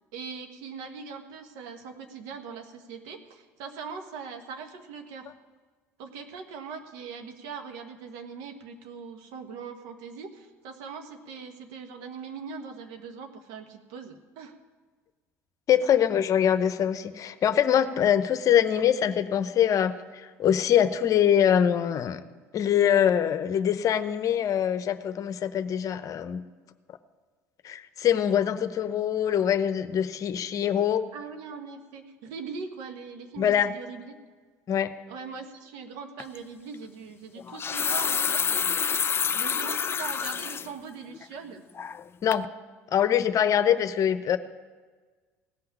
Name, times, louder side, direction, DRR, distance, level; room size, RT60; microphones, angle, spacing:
voice 1, 0.1-5.3 6.0-14.5 31.1-34.2 35.1-38.6 39.3-41.6, right 5 dB, 70° right, 6 dB, 1.4 m, -41 dB
voice 2, 15.7-22.2 22.5-26.4 27.6-31.0 33.4-33.7 34.7-34.9 42.2-42.5 42.9-44.4, left 9 dB, 45° left, 12 dB, 0.8 m, -24 dB
sound 1, 36.2-36.4 37.4-40.7 41.1-41.2 41.8-42.1 42.3-42.5, left 7 dB, 30° left, 0.4 m, -28 dB
16.5 x 5.8 x 9.8 m, 1.4 s
hypercardioid pair, 65°, 8 cm